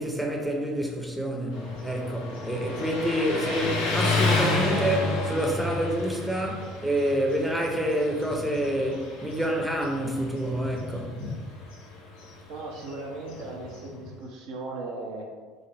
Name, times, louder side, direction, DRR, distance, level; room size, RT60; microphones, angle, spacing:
voice 1, 0.0-11.2, equal, 5° right, 0 dB, 0.6 m, -28 dB
Motorcycle, 1.5-14.1, left 2 dB, 80° left, 0.8 m, -31 dB
voice 2, 12.5-15.3, right 2 dB, 70° right, -1 dB, 0.6 m, -37 dB
3.8 x 2.1 x 3.3 m, 1.5 s
hypercardioid pair, 70°, 0 cm